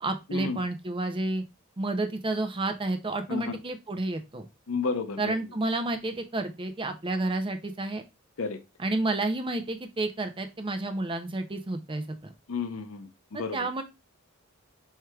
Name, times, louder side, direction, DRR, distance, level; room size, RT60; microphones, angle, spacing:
voice 1, 0.0-1.4 1.8-4.4 5.2-8.0 8.8-12.3 13.3-13.8, right 2 dB, 25° right, 0.5 m, -30 dB
voice 2, 4.7-5.4 8.4-8.6 12.5-13.7, left 4 dB, 70° left, 0.7 m, -32 dB
4.6 x 4.6 x 2.3 m
head